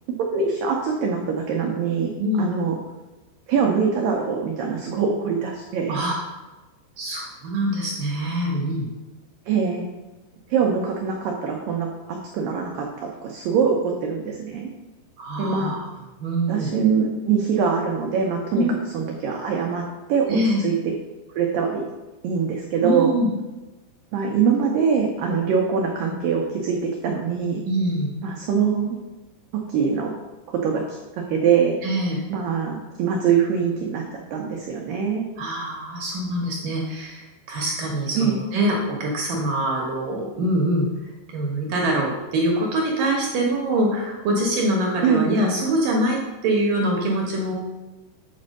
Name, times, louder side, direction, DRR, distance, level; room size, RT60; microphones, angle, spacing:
voice 1, 0.2-2.8 3.5-6.0 9.5-9.9 10.5-14.7 15.4-15.8 16.5-18.7 18.9-19.8 20.1-20.8 21.3-21.8 22.2-23.1 24.1-27.6 28.2-29.0 29.7-30.1 30.5-31.0 31.3-31.8 32.3-34.0 34.3-35.2 38.1-38.4 45.0-45.3, right 6 dB, 85° right, 0 dB, 1.9 m, -23 dB
voice 2, 7.0-8.9 15.2-15.8 16.2-16.7 18.5-18.7 20.3-20.6 22.8-23.3 27.6-28.2 31.8-32.2 35.4-40.9 41.3-47.5, right 1 dB, 70° right, -1 dB, 2.1 m, -24 dB
8.6 x 4.3 x 6.4 m, 1.1 s
omnidirectional pair, 5.1 m